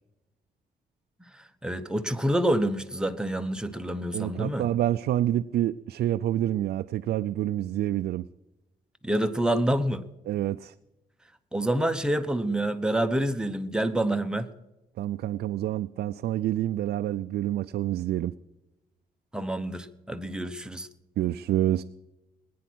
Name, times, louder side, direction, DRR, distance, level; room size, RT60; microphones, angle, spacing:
voice 1, 1.3-4.7 9.0-10.0 11.5-14.5 19.3-20.9, right 1 dB, 5° right, 7 dB, 1.0 m, -27 dB
voice 2, 4.1-8.3 10.3-10.7 15.0-18.3 21.2-21.8, right 12 dB, 80° right, 8 dB, 0.5 m, -27 dB
20.0 x 9.4 x 6.1 m, 1.0 s
cardioid pair, 110°, 16 cm